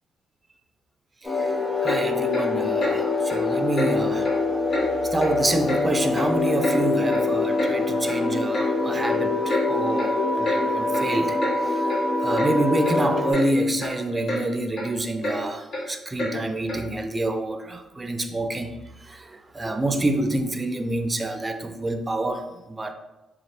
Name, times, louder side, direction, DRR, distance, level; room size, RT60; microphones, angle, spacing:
sound 1, 1.2-13.3, left 3 dB, 20° left, 1.3 m, -24 dB
Clock, 1.8-2.0 2.3-2.5 2.8-3.0 3.3-3.4 3.8-3.9 4.2-4.4 4.7-4.9 5.2-5.4 5.7-5.8 6.1-6.8 7.1-7.2 7.6-7.7 8.1-8.2 8.5-8.7 9.0-9.2 9.5-9.6 10.0-10.1 10.4-10.6 10.9-11.1 11.4-11.6 11.9-12.0 12.4-12.5 12.8-13.0 13.3-13.5 13.8-13.9 14.3-14.4 14.7-14.9 15.2-15.4 15.7-15.8 16.2-16.3 16.7-16.8, left 1 dB, 55° left, 1.0 m, -29 dB
voice 1, 1.8-4.3 5.1-11.8 12.2-18.7 19.0-22.9, right 1 dB, 20° right, 6 dB, 0.4 m, -27 dB
3.1 x 2.4 x 4.2 m, 1.0 s
cardioid pair, 90°, 0 cm